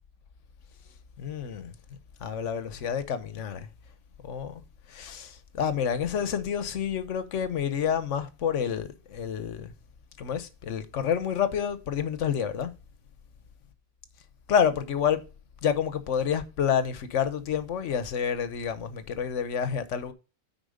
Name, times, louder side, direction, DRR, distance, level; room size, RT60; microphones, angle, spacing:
voice 1, 1.2-1.7 2.2-3.7 4.2-4.6 4.9-9.7 10.2-12.7 14.5-15.2 15.6-20.1, left 8 dB, 65° left, 1.2 m, -28 dB
9.2 x 4.5 x 5.0 m
omnidirectional pair, 1.4 m